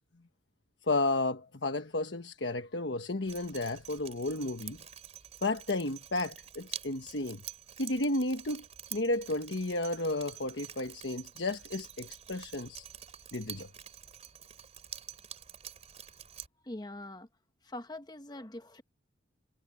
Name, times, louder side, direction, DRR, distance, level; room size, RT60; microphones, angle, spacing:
voice 1, 0.8-4.8 5.4-7.4 7.8-8.7 8.9-12.8 13.3-13.7, left 2 dB, 70° left, 1.3 m, -32 dB
Drip, 3.3-16.5, right 9 dB, 35° right, 4.7 m, -47 dB
voice 2, 16.6-17.3 17.6-18.8, left 1 dB, 20° left, 1.1 m, -43 dB
head